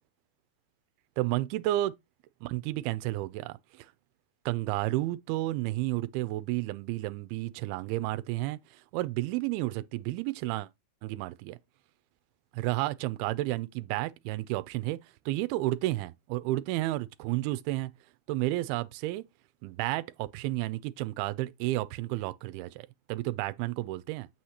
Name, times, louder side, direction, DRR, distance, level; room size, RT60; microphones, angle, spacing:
voice 1, 1.2-1.9 2.4-3.9 4.5-10.7 11.0-11.6 12.5-15.0 15.3-17.9 18.3-19.2 19.6-24.3, right 17 dB, 80° right, 2.4 m, -31 dB
7.9 x 6.2 x 2.8 m
omnidirectional pair, 4.7 m